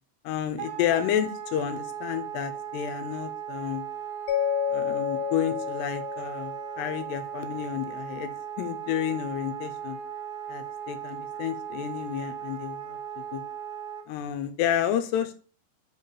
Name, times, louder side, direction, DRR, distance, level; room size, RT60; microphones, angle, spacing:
voice 1, 0.2-3.9 4.7-10.0 10.5-13.4 14.1-15.3, left 10 dB, 90° left, 8 dB, 2.7 m, -30 dB
Wind instrument woodwind instrument, 0.6-14.1, right 8 dB, 75° right, 2.5 m, -37 dB
Mallet percussion, 4.3-7.3, left 9 dB, 70° left, 3.0 m, -30 dB
5.9 x 3.9 x 5.6 m, 0.39 s
omnidirectional pair, 4.8 m